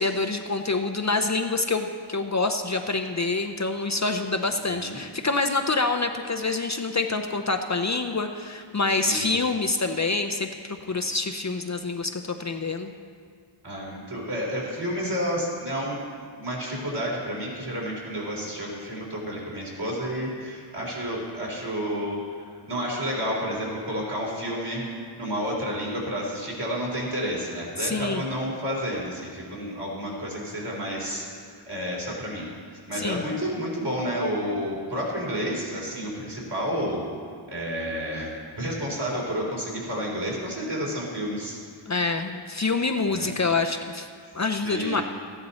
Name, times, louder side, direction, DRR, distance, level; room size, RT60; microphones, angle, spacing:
voice 1, 0.0-12.9 27.8-28.2 32.9-33.2 41.9-44.1 44.3-45.0, left 3 dB, 35° left, 6 dB, 0.6 m, -26 dB
voice 2, 4.6-5.0 9.0-9.3 13.6-16.0 16.4-24.8 25.2-37.0 37.5-41.6 43.1-43.3 44.6-45.0, equal, 55° right, -4 dB, 3.9 m, -30 dB
14.0 x 10.5 x 4.3 m, 2.1 s
wide cardioid pair, 70°, 48 cm